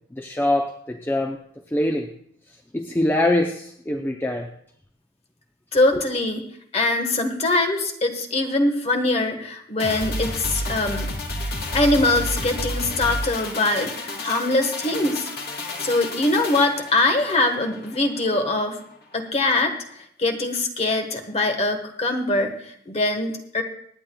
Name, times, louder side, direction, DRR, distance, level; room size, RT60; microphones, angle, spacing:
voice 1, 0.1-1.4 1.7-2.1 2.7-4.5, left 1 dB, 10° left, 2 dB, 0.6 m, -23 dB
voice 2, 5.7-6.5 6.7-11.1 11.7-15.3 15.8-18.8 19.1-19.7 20.2-23.6, left 2 dB, 35° left, 4 dB, 1.3 m, -22 dB
sound 1, 9.8-18.4 18.7-18.8, left 1 dB, 55° left, 1.5 m, -31 dB
25.0 x 9.5 x 2.3 m, 0.68 s
head